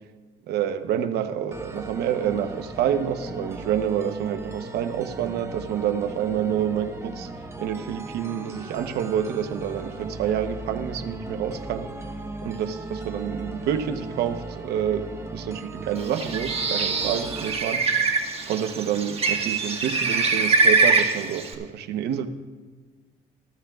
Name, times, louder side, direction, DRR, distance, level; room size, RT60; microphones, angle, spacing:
voice 1, 0.5-7.3 7.6-11.9 12.4-15.0 15.3-17.8 18.5-22.3, right 9 dB, 75° right, 9 dB, 0.9 m, -28 dB
sound 1, 1.5-17.5, right 2 dB, 15° right, 1.1 m, -37 dB
Bird, 16.0-21.5, right 4 dB, 35° right, 1.4 m, -23 dB
19.5 x 13.0 x 2.4 m, 1.4 s
cardioid pair, 110°, 17 cm